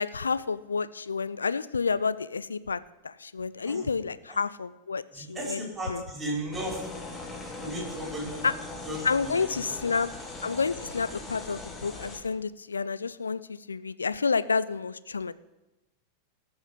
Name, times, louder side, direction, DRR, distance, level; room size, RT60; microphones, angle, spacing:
voice 1, 0.0-2.8 3.0-5.6 5.9-6.0 8.4-8.5 9.0-10.1 10.4-15.3, left 5 dB, 75° left, 17 dB, 0.4 m, -29 dB
voice 2, 5.1-6.8 7.6-8.4 8.8-9.8, right 1 dB, 15° right, -2 dB, 5.4 m, -35 dB
sound 1, 6.5-12.2, left 2 dB, 15° left, 1.7 m, -40 dB
18.5 x 6.3 x 5.0 m, 1.0 s
figure-of-eight pair, 90°, 0 cm